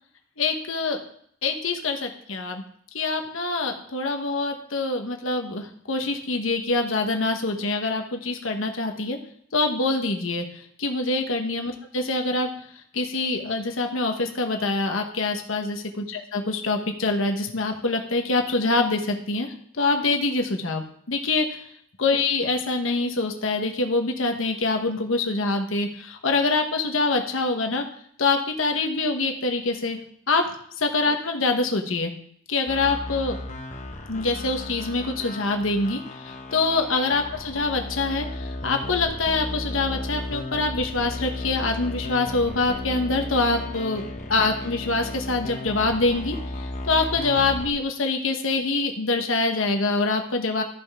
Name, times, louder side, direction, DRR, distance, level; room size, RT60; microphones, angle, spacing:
voice 1, 0.4-1.0 1.4-2.6 2.9-9.2 9.5-10.4 10.8-12.5 12.9-21.6 22.0-27.8 28.2-30.0 30.3-30.5 30.8-32.1 32.5-33.4 34.1-44.0 44.3-50.6, left 3 dB, 80° left, 4 dB, 1.2 m, -25 dB
sound 1, 32.7-47.7, left 1 dB, 40° left, 1.1 m, -34 dB
13.5 x 5.7 x 3.6 m, 0.65 s
head